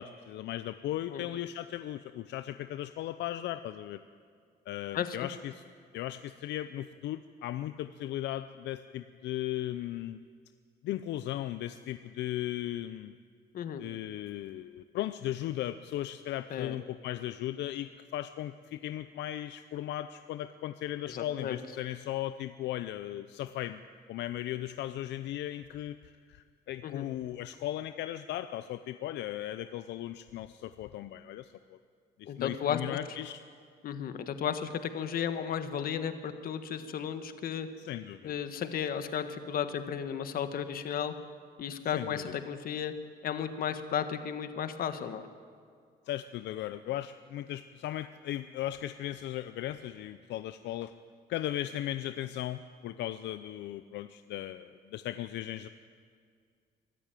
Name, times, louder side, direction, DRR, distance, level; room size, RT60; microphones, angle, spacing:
voice 1, 0.0-4.0 4.7-5.6 5.9-10.2 10.8-13.1 13.8-23.8 24.1-31.8 32.2-33.4 37.8-38.3 41.9-42.2 46.1-50.9 51.3-55.7, left 13 dB, 80° left, 11 dB, 0.6 m, -37 dB
voice 2, 4.9-5.3 13.5-13.8 16.5-16.8 21.1-21.6 26.8-27.0 32.3-33.0 33.8-37.7 38.2-41.1 41.6-42.9 43.2-45.3, left 8 dB, 55° left, 10 dB, 1.5 m, -34 dB
24.0 x 13.5 x 9.1 m, 2.1 s
cardioid pair, 150°, 18 cm